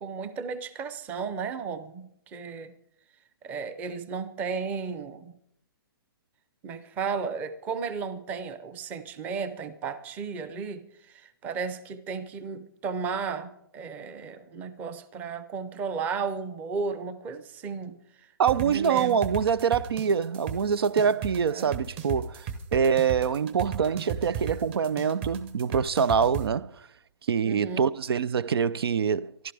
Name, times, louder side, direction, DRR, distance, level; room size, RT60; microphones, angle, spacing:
voice 1, 0.0-2.7 3.4-5.3 6.6-18.0 18.5-19.2 21.5-21.8 27.4-27.9, right 5 dB, 15° right, 0.6 m, -34 dB
voice 2, 18.4-26.7 27.3-29.3, right 7 dB, 90° right, 0.6 m, -25 dB
sound 1, 18.5-26.4, right 8 dB, 30° right, 1.1 m, -34 dB
25.0 x 12.0 x 3.5 m
hypercardioid pair, 170°, 12 cm